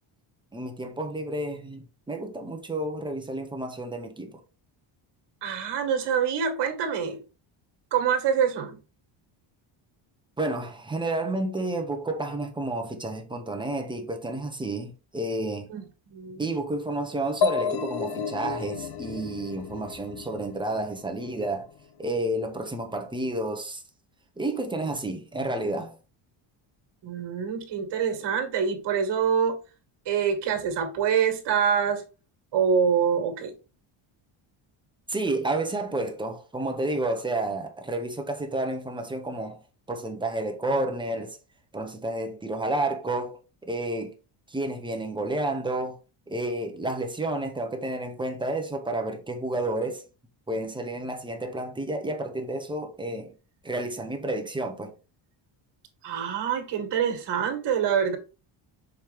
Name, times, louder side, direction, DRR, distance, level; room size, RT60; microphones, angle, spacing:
voice 1, 0.5-4.3 10.4-15.7 16.4-21.7 22.0-23.8 24.4-26.0 35.1-39.6 39.9-41.4 41.7-43.4 43.6-44.1 44.5-46.0 46.3-50.0 50.5-53.3 53.6-54.9, right 2 dB, 10° right, 0.7 m, -30 dB
voice 2, 5.4-7.2 7.9-8.8 15.7-16.5 27.0-29.6 30.1-32.0 32.5-33.5 56.0-58.2, right 7 dB, 55° right, 1.8 m, -25 dB
sound 1, 17.4-21.1, left 6 dB, 50° left, 0.7 m, -31 dB
6.4 x 4.6 x 3.5 m
cardioid pair, 175°, 50 cm